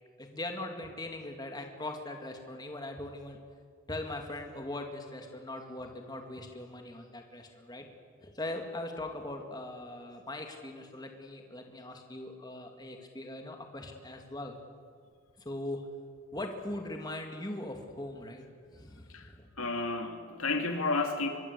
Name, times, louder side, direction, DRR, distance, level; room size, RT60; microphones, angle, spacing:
voice 1, 0.2-3.4 3.9-7.9 8.2-14.6 15.4-15.8 16.3-18.4 18.7-19.5, left 1 dB, 20° left, 4 dB, 2.2 m, -40 dB
voice 2, 19.6-21.3, left 3 dB, 85° left, 5 dB, 2.8 m, -31 dB
25.0 x 22.0 x 8.2 m, 2.1 s
head